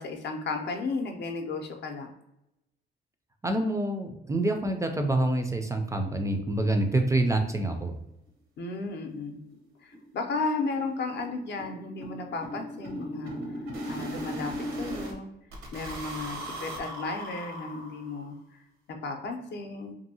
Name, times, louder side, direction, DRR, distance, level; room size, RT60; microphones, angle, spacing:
voice 1, 0.0-2.1 8.6-9.4 9.8-13.4 13.9-15.3 15.7-18.3 18.9-20.0, left 3 dB, 60° left, 4 dB, 0.5 m, -34 dB
voice 2, 3.4-8.0, right 1 dB, 15° right, 5 dB, 0.3 m, -27 dB
sound 1, 8.3-8.4 8.7-8.8 9.1-9.2 9.5-9.7 9.9-15.1 15.5-18.3, equal, 85° right, 0.8 m, -38 dB
2.7 x 2.6 x 2.7 m, 0.88 s
cardioid pair, 90°, 20 cm